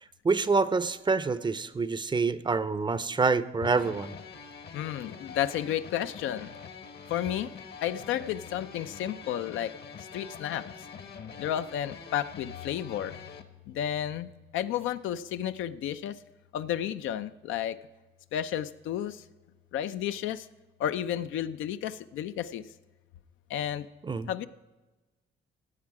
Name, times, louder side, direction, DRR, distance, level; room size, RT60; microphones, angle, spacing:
voice 1, 0.2-4.2 24.0-24.3, right 4 dB, 25° right, 15 dB, 0.5 m, -26 dB
sound 1, 3.6-13.4, left 6 dB, 55° left, 1.0 m, -45 dB
voice 2, 4.7-6.5 7.1-7.5 7.8-9.7 10.1-10.7 11.4-13.1 13.7-16.2 16.5-17.8 18.3-19.2 19.7-20.5 20.8-22.7 23.5-23.9 24.3-24.5, left 10 dB, 85° left, 11 dB, 0.5 m, -32 dB
15.5 x 7.4 x 4.8 m, 1.2 s
cardioid pair, 90°, 20 cm